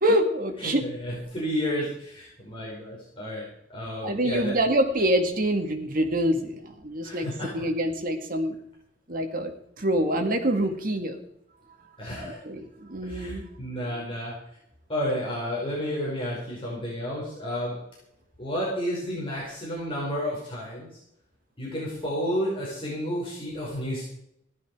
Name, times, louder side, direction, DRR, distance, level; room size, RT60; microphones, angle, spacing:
voice 1, 0.0-0.9 4.0-7.3 7.5-8.6 9.1-11.2 12.2-13.5 13.9-14.0, right 1 dB, 50° right, 5 dB, 2.1 m, -26 dB
voice 2, 0.6-4.5 7.0-7.5 12.0-12.4 13.0-14.4 14.9-17.8 18.4-21.0 21.6-24.1, equal, 30° left, -5 dB, 5.3 m, -31 dB
15.5 x 12.5 x 4.9 m, 0.75 s
head